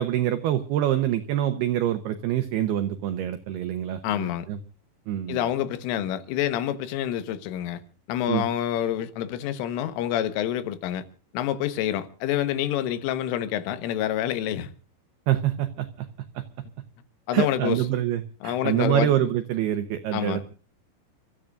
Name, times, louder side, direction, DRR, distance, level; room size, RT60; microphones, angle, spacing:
voice 1, 0.0-4.6 5.1-5.4 8.3-8.5 15.3-16.1 16.4-16.5 17.3-20.5, right 12 dB, 80° right, 2.3 m, -26 dB
voice 2, 4.0-4.5 5.3-7.8 8.1-11.1 11.3-14.7 17.3-17.8 18.4-19.1 20.1-20.5, left 11 dB, 85° left, 3.8 m, -27 dB
30.0 x 14.0 x 2.5 m
omnidirectional pair, 5.6 m